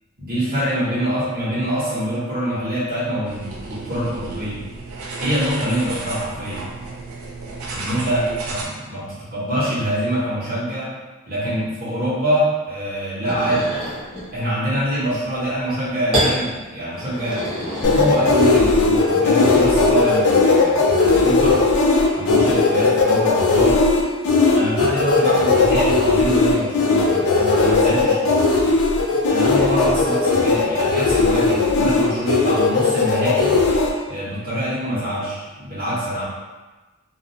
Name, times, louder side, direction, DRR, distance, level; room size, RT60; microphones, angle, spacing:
voice 1, 0.2-4.6 5.2-6.6 7.7-10.9 11.3-13.8 14.3-17.5 17.8-21.6 22.2-23.8 24.5-28.6 29.3-33.6 34.1-36.2, equal, 45° right, -10 dB, 1.1 m, -24 dB
sound 1, 3.2-8.6, right 3 dB, 80° right, 0.5 m, -32 dB
sound 2, 13.2-14.3 16.1-16.4 16.9-18.8, equal, 25° right, 1.0 m, -26 dB
sound 3, 17.8-33.9, left 3 dB, 85° left, 0.4 m, -17 dB
2.6 x 2.1 x 2.8 m, 1.2 s
head